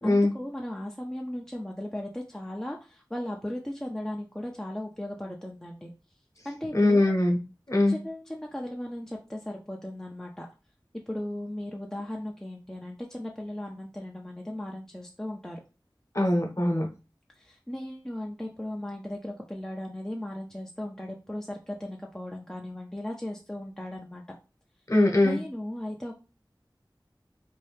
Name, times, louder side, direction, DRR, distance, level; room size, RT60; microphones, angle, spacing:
voice 1, 0.0-5.9 6.4-7.1 7.9-10.5 11.1-15.6 17.4-24.2 25.2-26.2, left 1 dB, 5° left, 0 dB, 0.4 m, -37 dB
voice 2, 6.7-7.4 7.7-7.9 16.1-16.9 24.9-25.4, left 2 dB, 40° left, 1 dB, 0.9 m, -22 dB
2.7 x 2.2 x 3.3 m, 0.31 s
wide cardioid pair, 45°, 8 cm